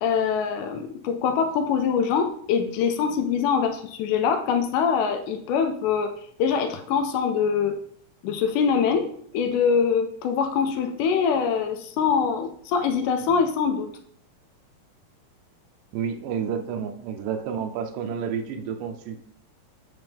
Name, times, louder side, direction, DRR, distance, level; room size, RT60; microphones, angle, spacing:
voice 1, 0.0-6.1 6.4-7.8 8.2-9.1 9.3-13.9, left 6 dB, 80° left, 6 dB, 2.0 m, -24 dB
voice 2, 15.9-19.2, right 7 dB, 80° right, 6 dB, 2.2 m, -30 dB
8.0 x 4.2 x 3.4 m, 0.62 s
omnidirectional pair, 4.0 m